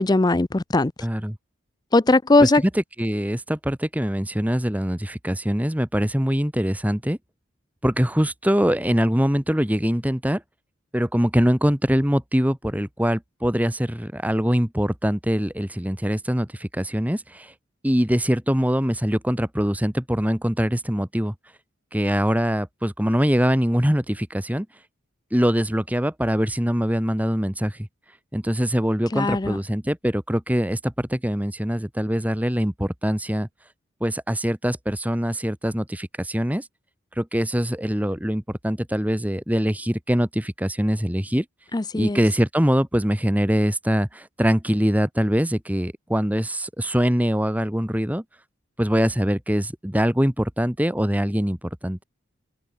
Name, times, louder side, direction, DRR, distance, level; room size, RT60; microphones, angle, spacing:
voice 1, 0.0-0.9 1.9-2.6 29.1-29.6 41.7-42.2, left 2 dB, 20° left, 0.5 m, -19 dB
voice 2, 1.0-1.4 2.4-7.2 7.8-10.4 10.9-17.5 17.8-21.3 21.9-24.7 25.3-27.9 28.3-33.5 34.0-36.7 37.2-41.5 41.9-48.2 48.8-52.0, equal, 10° right, 2.0 m, -23 dB
open air
head